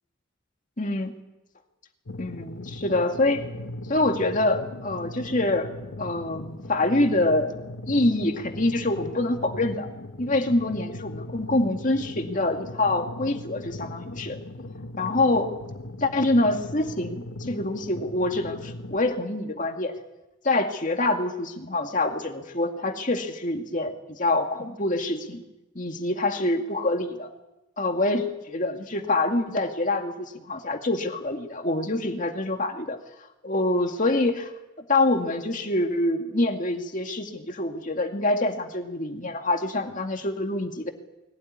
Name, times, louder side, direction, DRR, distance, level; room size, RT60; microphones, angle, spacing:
voice 1, 0.8-1.1 2.2-3.4 3.9-5.7 6.0-7.5 7.9-9.9 10.2-14.4 15.0-15.6 16.0-19.9 20.4-25.4 25.8-27.3 27.8-33.0 33.4-34.5 34.9-40.9, left 2 dB, 40° left, 4 dB, 2.2 m, -25 dB
sound 1, 2.1-19.0, left 1 dB, 80° left, 1.4 m, -39 dB
21.5 x 17.5 x 9.7 m, 0.98 s
head